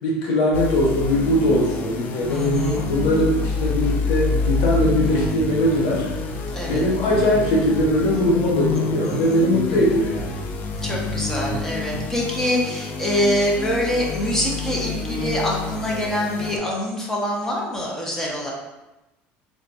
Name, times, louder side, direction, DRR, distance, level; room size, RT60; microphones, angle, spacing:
voice 1, 0.0-6.1 6.7-10.3, equal, 85° left, -4 dB, 1.1 m, -20 dB
sound 1, 0.5-16.6, left 4 dB, 40° left, 0.4 m, -28 dB
voice 2, 2.3-2.9 6.5-6.8 9.0-9.4 10.8-18.5, equal, 10° left, -3 dB, 0.7 m, -25 dB
sound 2, 2.5-12.1, right 6 dB, 90° right, 0.3 m, -36 dB
3.4 x 2.2 x 4.0 m, 1.0 s
cardioid pair, 150°, 5 cm